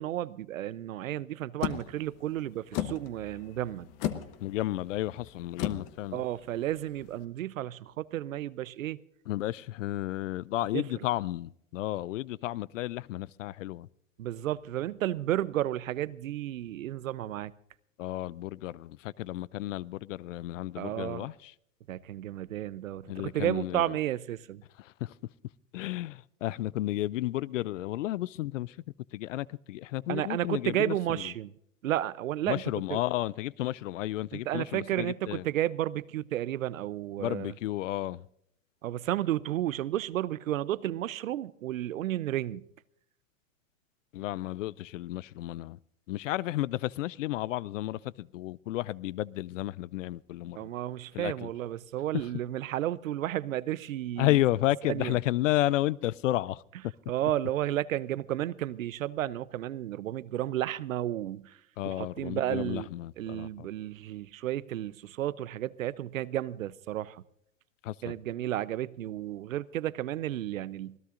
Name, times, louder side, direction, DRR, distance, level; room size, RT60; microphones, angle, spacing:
voice 1, 0.0-3.9 6.1-9.0 10.7-10.9 14.2-17.5 20.8-21.3 21.9-24.6 30.1-31.5 31.8-32.6 32.9-33.0 34.3-37.5 38.8-42.7 50.6-54.4 54.9-55.2 57.1-61.6 61.8-62.9 63.2-67.2 68.0-71.0, right 13 dB, 80° right, 0.8 m, -32 dB
sound 1, 1.6-7.2, left 12 dB, 45° left, 1.3 m, -37 dB
voice 2, 4.4-6.2 9.3-13.9 18.0-21.5 23.1-23.9 24.8-25.1 25.7-28.8 29.1-31.2 32.5-35.4 37.2-38.3 44.1-45.8 46.1-50.7 51.1-51.5 54.2-56.6 61.8-63.7 67.8-68.1, left 15 dB, 70° left, 0.5 m, -32 dB
26.0 x 16.5 x 2.5 m
hypercardioid pair, 130°, 39 cm